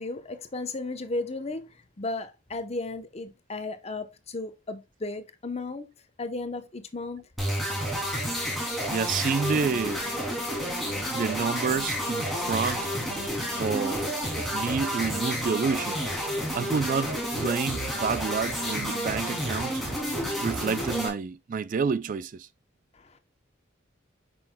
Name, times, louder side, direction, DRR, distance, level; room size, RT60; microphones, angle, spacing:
voice 1, 0.0-1.7 2.0-5.9 6.2-7.2 22.9-23.2, left 2 dB, 35° left, 0.8 m, -34 dB
sound 1, 7.4-21.1, equal, ahead, 2.8 m, -30 dB
voice 2, 8.9-10.0 11.1-12.9 13.6-14.1 14.3-16.0 16.6-19.8 20.4-22.5, right 5 dB, 40° right, 0.3 m, -29 dB
8.4 x 6.2 x 2.2 m
head